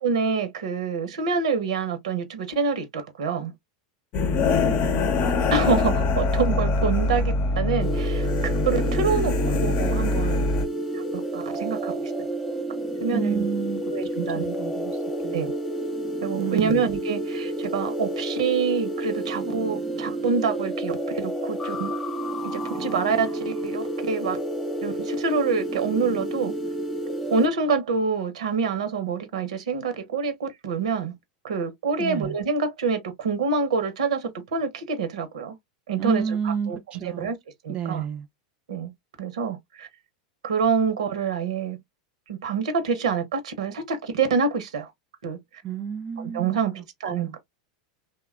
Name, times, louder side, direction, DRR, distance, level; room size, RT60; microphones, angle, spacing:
voice 1, 0.0-3.5 5.3-10.5 10.9-11.0 11.3-12.1 13.0-13.5 13.9-14.5 15.3-15.5 16.2-21.9 22.5-24.4 24.8-26.5 27.3-31.1 31.4-35.5 35.9-36.8 37.0-37.4 37.6-38.0 38.7-38.9 39.2-39.9 40.4-41.8 42.3-44.9 45.2-45.4 46.3-47.4, right 5 dB, 80° right, 0.7 m, -26 dB
sound 1, 4.1-10.7, left 3 dB, 45° left, 0.7 m, -23 dB
voice 2, 4.2-5.1 13.1-13.8 14.2-15.5 16.4-16.8 32.0-32.4 36.0-37.3 37.7-38.3 45.6-47.4, right 7 dB, 35° right, 0.4 m, -31 dB
sound 2, 7.8-27.5, right 1 dB, 5° left, 0.9 m, -30 dB
2.8 x 2.2 x 2.3 m
hypercardioid pair, 105°, 4 cm